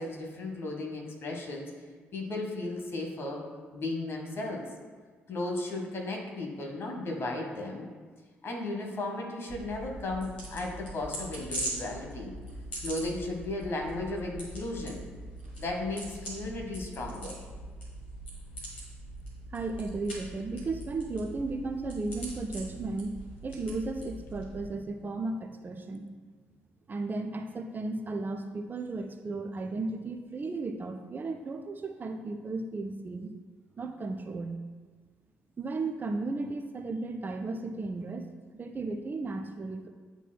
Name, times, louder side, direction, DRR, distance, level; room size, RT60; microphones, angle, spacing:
voice 1, 0.0-1.7 2.1-3.4 3.7-4.7 5.3-7.9 8.4-12.3 12.8-15.0 15.6-17.3, left 2 dB, 45° left, 1 dB, 1.4 m, -35 dB
sound 1, 9.5-24.7, right 1 dB, 80° left, 1.5 m, -42 dB
voice 2, 19.5-26.1 26.9-33.3 33.8-34.6 35.6-39.9, right 3 dB, 30° right, 5 dB, 0.5 m, -35 dB
9.7 x 4.4 x 2.3 m, 1.5 s
figure-of-eight pair, 45°, 6 cm